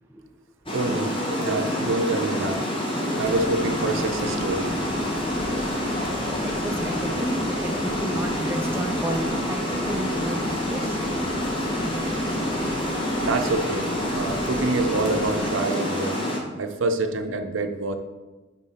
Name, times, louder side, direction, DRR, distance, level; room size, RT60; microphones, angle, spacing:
Water, 0.7-16.4, left 1 dB, 30° left, 1.0 m, -27 dB
voice 1, 0.7-2.6 3.2-4.7 13.2-16.2 16.5-17.9, right 2 dB, 90° right, 7 dB, 0.6 m, -26 dB
sound 1, 3.1-15.5, equal, 50° left, 1.2 m, -36 dB
voice 2, 5.8-11.0, right 1 dB, 10° right, 3 dB, 0.4 m, -32 dB
5.6 x 4.3 x 4.2 m, 1.2 s
head